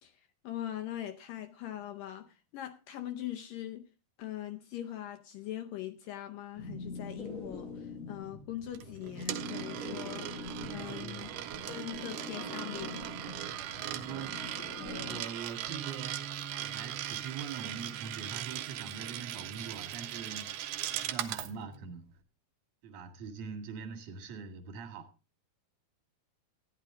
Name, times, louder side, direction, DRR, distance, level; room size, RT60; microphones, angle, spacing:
voice 1, 0.0-3.9 4.2-10.3 10.7-11.3 11.7-13.0, left 12 dB, 75° left, 2.3 m, -41 dB
sound 1, 6.6-15.2, left 3 dB, 45° left, 1.1 m, -44 dB
Coin (dropping), 8.7-21.5, right 12 dB, 75° right, 2.1 m, -39 dB
voice 2, 10.8-11.3 13.8-14.4 14.8-20.6 20.9-22.2 22.8-25.1, right 6 dB, 50° right, 2.8 m, -43 dB
Bass guitar, 15.7-21.9, right 6 dB, 30° right, 1.6 m, -49 dB
14.0 x 10.5 x 3.7 m
omnidirectional pair, 4.4 m